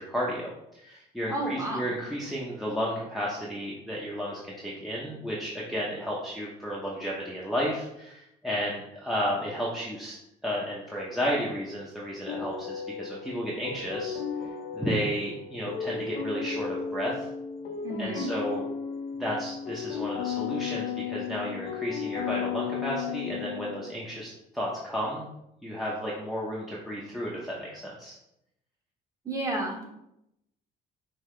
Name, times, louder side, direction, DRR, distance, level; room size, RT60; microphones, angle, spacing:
voice 1, 0.0-10.1 10.4-14.2 14.7-17.3 18.0-18.6 19.2-25.3 25.6-28.2, equal, ahead, -5 dB, 0.8 m, -32 dB
voice 2, 1.3-1.9 17.8-18.3 29.2-29.9, right 1 dB, 20° right, -1 dB, 1.3 m, -31 dB
sound 1, 12.3-24.0, left 7 dB, 75° left, 0.6 m, -34 dB
5.5 x 2.8 x 3.3 m, 0.83 s
cardioid pair, 110°, 17 cm